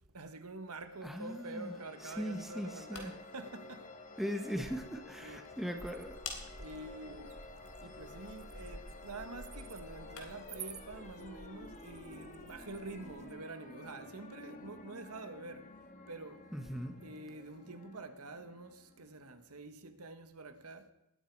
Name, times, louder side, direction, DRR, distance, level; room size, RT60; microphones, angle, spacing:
voice 1, 0.1-3.9 5.2-5.5 6.5-7.4 7.8-15.7 16.1-16.4 17.0-20.9, right 2 dB, 75° right, 1.6 m, -47 dB
sound 1, 0.8-19.4, left 2 dB, 35° left, 1.8 m, -52 dB
voice 2, 1.0-1.7 2.2-3.1 4.2-6.1 16.5-16.9, equal, ahead, 1.6 m, -39 dB
sound 2, 2.6-10.6, left 5 dB, 70° left, 3.5 m, -53 dB
sound 3, 5.8-13.3, right 3 dB, 30° right, 1.3 m, -51 dB
19.5 x 13.0 x 4.8 m
head